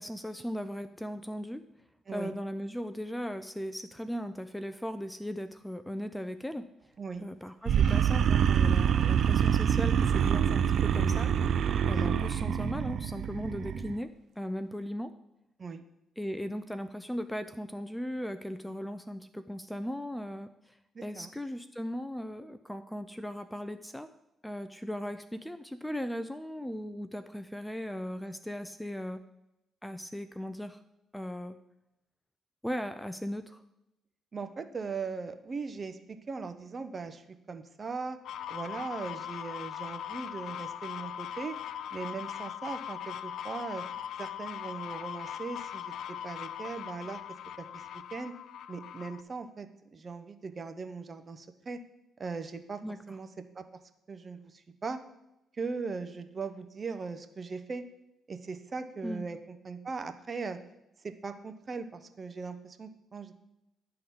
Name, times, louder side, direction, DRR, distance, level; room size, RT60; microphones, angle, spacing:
voice 1, 0.0-1.6 2.1-6.7 7.2-11.3 11.9-15.1 16.2-20.8 21.0-24.1 24.4-29.2 29.8-30.8 31.1-31.6 32.6-33.6 52.8-53.0 59.0-59.3, equal, 5° left, 11 dB, 0.4 m, -37 dB
sound 1, 7.7-13.9, right 8 dB, 65° right, 0.4 m, -26 dB
voice 2, 20.9-21.3 34.3-38.2 38.5-41.6 41.9-43.8 44.2-47.2 47.6-48.3 48.7-51.8 52.2-52.8 53.1-53.3 53.5-53.6 54.1-55.0 55.5-57.8 58.3-60.6 61.0-63.3, right 4 dB, 35° right, 8 dB, 0.8 m, -39 dB
sound 2, 38.2-49.2, left 10 dB, 75° left, 0.4 m, -40 dB
11.0 x 3.9 x 7.0 m, 0.88 s
cardioid pair, 90°, 0 cm